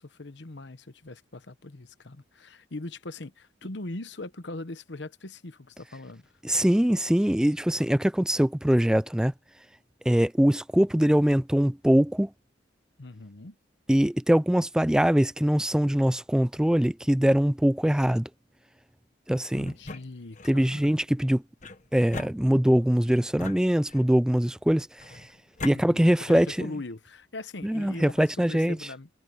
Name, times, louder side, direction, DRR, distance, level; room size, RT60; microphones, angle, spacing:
voice 1, 0.0-6.3 13.0-13.6 19.3-21.0 25.6-29.1, left 2 dB, 65° left, 1.1 m, -41 dB
voice 2, 6.4-9.3 10.1-12.3 13.9-18.3 19.3-19.7 20.5-21.4 21.9-25.3 25.6-26.7 27.6-28.8, equal, 5° right, 0.3 m, -23 dB
sound 1, 19.6-20.6 21.6-22.9 23.4-24.2 25.0-25.8, left 3 dB, 40° left, 1.3 m, -40 dB
head